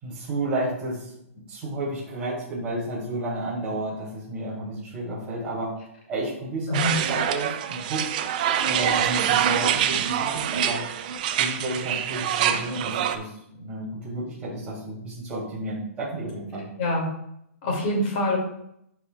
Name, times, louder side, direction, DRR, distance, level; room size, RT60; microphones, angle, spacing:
voice 1, 0.0-1.1 1.3-5.7 6.1-8.0 8.6-10.8 11.4-16.6, right 2 dB, 15° right, -9 dB, 2.9 m, -32 dB
voice 2, 6.7-7.0 16.8-17.1 17.6-18.4, left 1 dB, 35° left, 0 dB, 2.4 m, -24 dB
sound 1, 6.7-13.2, right 9 dB, 35° right, 0.5 m, -25 dB
11.5 x 5.0 x 2.4 m, 0.76 s
hypercardioid pair, 170°, 8 cm